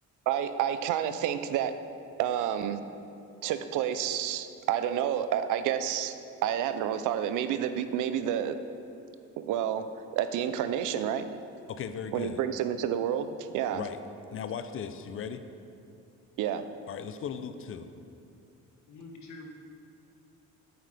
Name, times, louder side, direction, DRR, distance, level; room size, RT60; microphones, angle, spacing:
voice 1, 0.3-1.8 2.2-2.8 3.4-6.1 6.4-8.6 9.4-9.9 10.1-11.3 12.1-13.8 16.4-16.6, right 10 dB, 85° right, 10 dB, 0.5 m, -29 dB
voice 2, 11.7-12.4 13.7-14.0 14.3-15.4 16.9-17.9, left 7 dB, 45° left, 10 dB, 0.5 m, -37 dB
voice 3, 18.9-19.5, left 3 dB, 65° left, 1 dB, 1.3 m, -46 dB
8.5 x 7.9 x 3.4 m, 2.6 s
cardioid pair, 90°, 30 cm